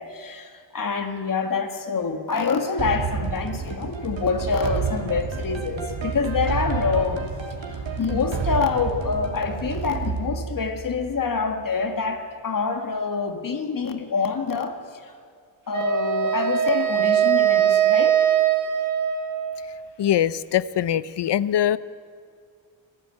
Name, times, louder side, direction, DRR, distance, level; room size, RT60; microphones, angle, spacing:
voice 1, 0.0-7.2 7.6-15.1 15.7-18.3, left 5 dB, 45° left, 6 dB, 1.8 m, -26 dB
sound 1, 2.8-11.6, right 5 dB, 80° right, 3.1 m, -30 dB
Wind instrument woodwind instrument, 15.7-19.9, right 10 dB, 40° right, 1.7 m, -21 dB
voice 2, 20.0-21.8, left 11 dB, 65° left, 17 dB, 0.7 m, -22 dB
25.5 x 15.5 x 9.0 m, 2.1 s
wide cardioid pair, 145°, 45 cm